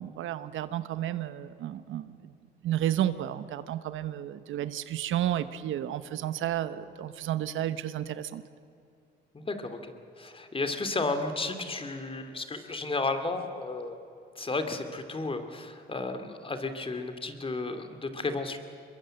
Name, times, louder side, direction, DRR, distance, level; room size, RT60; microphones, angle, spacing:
voice 1, 0.0-2.3 2.6-8.4, right 12 dB, 80° right, 13 dB, 1.0 m, -32 dB
voice 2, 9.3-14.0 14.4-18.6, left 3 dB, 25° left, 8 dB, 2.5 m, -33 dB
23.5 x 22.0 x 7.7 m, 2.6 s
cardioid pair, 90°, 20 cm